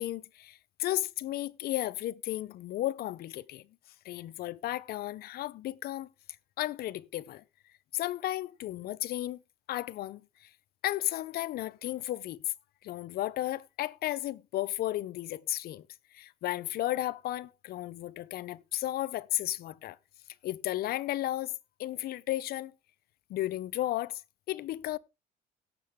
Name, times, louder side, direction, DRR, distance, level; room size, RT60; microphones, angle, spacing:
voice 1, 0.0-3.7 4.0-6.1 6.6-7.4 7.9-9.4 9.7-10.5 10.8-12.4 12.8-15.8 16.1-20.0 20.4-21.5 21.8-22.7 23.3-24.2 24.5-25.0, left 14 dB, 65° left, 0.6 m, -34 dB
17.0 x 6.7 x 3.6 m
cardioid pair, 110°, 17 cm